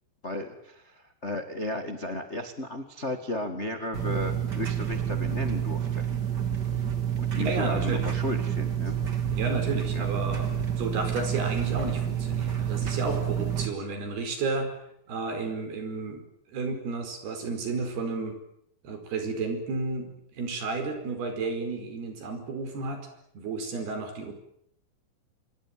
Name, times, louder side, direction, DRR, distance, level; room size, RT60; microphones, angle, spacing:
voice 1, 0.2-6.0 7.2-9.0 9.9-10.1, left 1 dB, 40° left, 7 dB, 1.0 m, -34 dB
sound 1, 3.9-13.7, right 9 dB, 30° right, 2.1 m, -29 dB
voice 2, 7.3-8.1 9.3-14.7 15.1-16.2 16.5-18.4 18.8-23.1 23.3-24.3, right 3 dB, 65° right, 7 dB, 6.7 m, -32 dB
26.0 x 23.0 x 9.3 m, 0.72 s
omnidirectional pair, 5.0 m